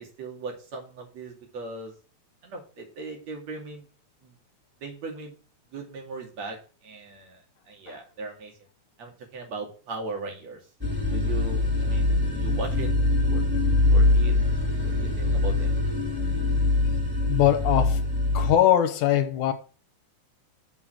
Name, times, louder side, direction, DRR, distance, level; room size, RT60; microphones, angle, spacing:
voice 1, 0.0-1.9 2.4-3.9 4.2-4.4 4.8-5.4 5.7-6.6 6.8-7.4 7.7-8.5 9.0-10.6 11.0-13.4 13.7-14.3 14.8-15.8, right 3 dB, 60° right, 3.6 m, -38 dB
sound 1, 10.8-18.5, left 2 dB, 5° right, 2.4 m, -23 dB
voice 2, 17.3-18.0 18.3-19.5, left 11 dB, 80° left, 2.3 m, -21 dB
6.9 x 6.0 x 7.5 m
omnidirectional pair, 3.4 m